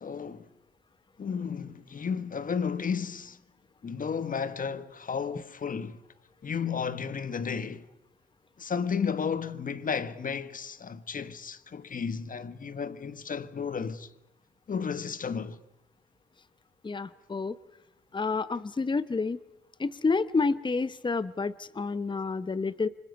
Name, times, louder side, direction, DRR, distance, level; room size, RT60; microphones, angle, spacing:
voice 1, 0.0-0.5 1.2-3.4 3.8-6.0 6.4-7.8 8.6-14.1 14.7-15.6, left 6 dB, 45° left, 1.4 m, -33 dB
voice 2, 16.8-17.6 18.1-19.4 19.8-22.9, left 4 dB, 25° left, 0.9 m, -29 dB
29.0 x 25.5 x 5.3 m
hypercardioid pair, 45°, 19 cm